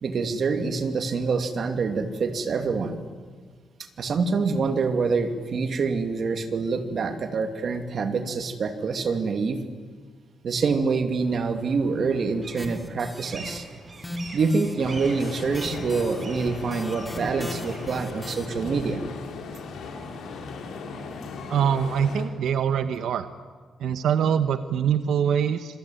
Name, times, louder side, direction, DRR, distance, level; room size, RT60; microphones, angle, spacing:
voice 1, 0.0-2.9 4.0-9.6 10.4-13.7 14.3-19.0, right 4 dB, 45° right, 6 dB, 2.6 m, -26 dB
sound 1, 11.2-18.0, right 3 dB, 30° right, 4.4 m, -44 dB
sound 2, 12.6-13.6 13.9-18.9, left 1 dB, 10° left, 2.7 m, -39 dB
sound 3, 14.8-22.2, left 4 dB, 85° left, 4.6 m, -37 dB
voice 2, 21.5-23.3 23.8-25.8, right 8 dB, 85° right, 10 dB, 1.1 m, -24 dB
27.0 x 23.0 x 9.4 m, 1.5 s
wide cardioid pair, 165°, 0 cm